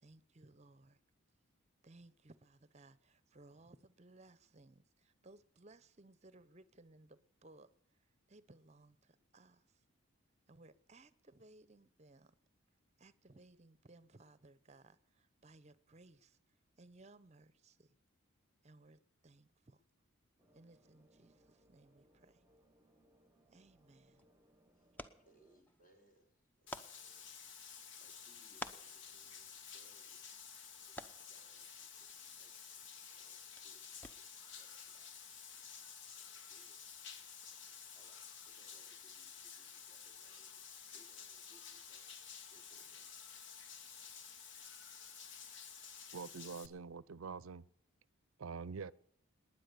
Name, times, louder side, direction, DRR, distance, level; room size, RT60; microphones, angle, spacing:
voice 1, 0.0-1.0 1.8-7.7 8.3-9.8 10.5-12.4 13.0-16.4 16.8-18.0 18.6-19.8 20.5-22.4 23.5-24.2, right 2 dB, 30° right, 0.8 m, -62 dB
sound 1, 20.4-25.6, right 1 dB, 10° right, 1.1 m, -71 dB
sound 2, 23.8-34.5, equal, 10° left, 0.8 m, -55 dB
voice 2, 25.2-30.3 30.8-32.8 33.1-35.1 36.2-36.8 37.9-40.7 40.9-42.1 42.5-43.1, right 2 dB, 40° left, 3.4 m, -71 dB
Bathtub (filling or washing), 26.7-46.7, left 7 dB, 60° left, 1.2 m, -52 dB
voice 3, 46.1-47.6 48.4-48.9, right 5 dB, 80° right, 0.6 m, -45 dB
20.0 x 9.9 x 6.7 m
head